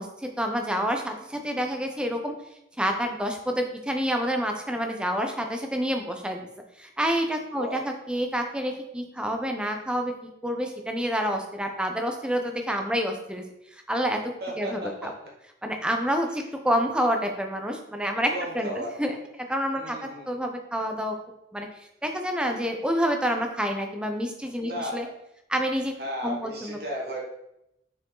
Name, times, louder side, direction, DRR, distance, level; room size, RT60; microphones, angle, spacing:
voice 1, 0.0-2.3 2.8-6.5 6.8-10.1 10.4-13.4 13.9-15.1 15.6-19.2 19.5-21.2 21.5-21.7 22.0-25.1 25.5-25.9 26.2-26.8, equal, 5° right, 3 dB, 0.7 m, -28 dB
voice 2, 14.4-15.1 18.3-18.9 19.7-20.3 24.6-25.1 26.0-27.2, equal, 60° right, -3 dB, 2.1 m, -34 dB
5.9 x 4.7 x 3.9 m, 0.83 s
head